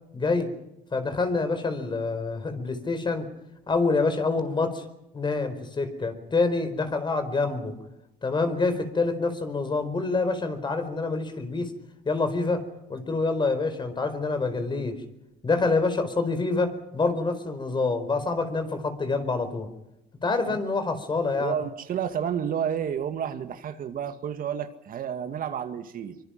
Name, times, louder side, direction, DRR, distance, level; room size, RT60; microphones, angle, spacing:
voice 1, 0.1-0.5 0.9-3.3 3.7-4.8 5.1-7.7 8.2-11.7 12.0-12.6 12.9-15.0 15.4-19.7 20.2-21.5, left 3 dB, 25° left, 9 dB, 4.5 m, -26 dB
voice 2, 21.4-26.2, right 8 dB, 55° right, 8 dB, 2.1 m, -30 dB
24.5 x 24.5 x 5.9 m, 0.89 s
cardioid pair, 110°, 17 cm